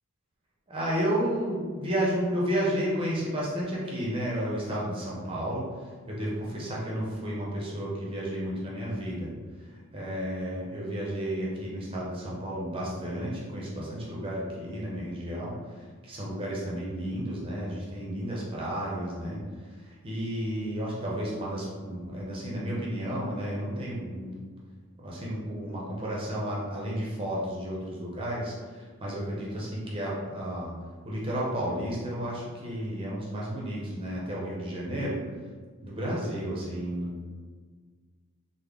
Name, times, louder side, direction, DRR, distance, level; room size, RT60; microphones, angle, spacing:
voice 1, 0.7-5.7 6.1-9.3 9.7-15.6 16.0-19.4 19.8-24.4 25.0-30.7 31.0-35.2 35.8-37.2, equal, 25° right, -5 dB, 0.6 m, -32 dB
3.5 x 2.0 x 3.5 m, 1.5 s
head